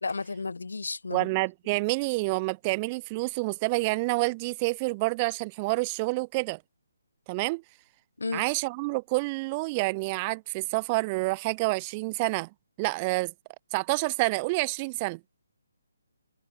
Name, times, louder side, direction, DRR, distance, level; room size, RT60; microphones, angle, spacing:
voice 1, 0.0-1.3 8.2-8.4, left 4 dB, 70° left, 1.5 m, -33 dB
voice 2, 1.1-6.6 7.3-7.6 8.3-12.5 12.8-13.3 13.7-15.2, right 26 dB, 25° right, 0.7 m, -28 dB
figure-of-eight pair, 145°, 0 cm